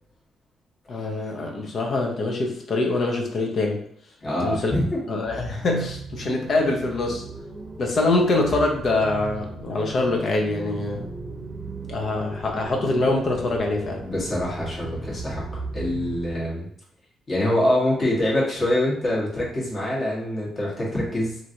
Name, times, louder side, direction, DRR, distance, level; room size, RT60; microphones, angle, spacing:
voice 1, 0.9-3.8 4.4-4.7 5.1-7.2 7.8-11.1 11.9-14.0, left 2 dB, 50° left, 1 dB, 0.7 m, -24 dB
voice 2, 4.2-5.0 14.0-15.4 15.7-16.7 17.3-21.4, left 1 dB, 35° left, -5 dB, 1.4 m, -25 dB
sound 1, 5.2-16.5, right 3 dB, 20° right, 0.8 m, -37 dB
2.9 x 2.5 x 2.8 m, 0.69 s
cardioid pair, 90°, 0 cm